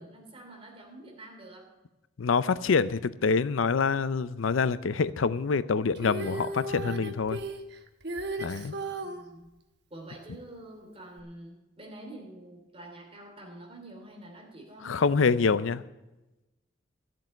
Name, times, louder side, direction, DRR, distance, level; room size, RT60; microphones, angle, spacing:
voice 1, 0.0-1.7 9.0-9.5 9.9-15.7, right 1 dB, 30° right, 1 dB, 2.8 m, -47 dB
voice 2, 2.2-7.4 8.4-8.7 14.8-15.8, left 5 dB, 90° left, 16 dB, 0.5 m, -26 dB
Female singing, 5.9-9.2 11.2-11.3, right 2 dB, 55° right, 1.1 m, -35 dB
13.0 x 7.6 x 9.0 m, 1.0 s
head